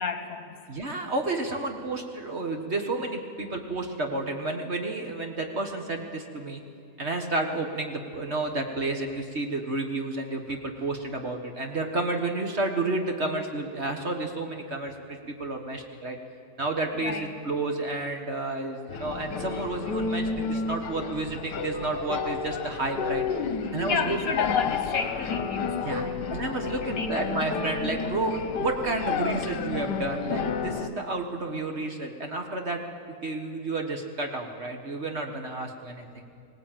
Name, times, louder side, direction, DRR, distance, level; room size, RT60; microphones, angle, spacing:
voice 1, 0.0-0.6 16.9-17.4 23.6-26.3 26.6-27.5, left 5 dB, 55° left, 7 dB, 1.8 m, -32 dB
voice 2, 0.7-6.6 7.0-16.2 16.6-23.2 23.7-24.5 25.8-26.0 26.3-32.8 33.2-36.2, right 2 dB, 40° right, 4 dB, 1.6 m, -31 dB
sound 1, 18.9-30.9, left 5 dB, 75° left, 1.5 m, -31 dB
20.0 x 18.0 x 9.0 m, 2.3 s
omnidirectional pair, 1.9 m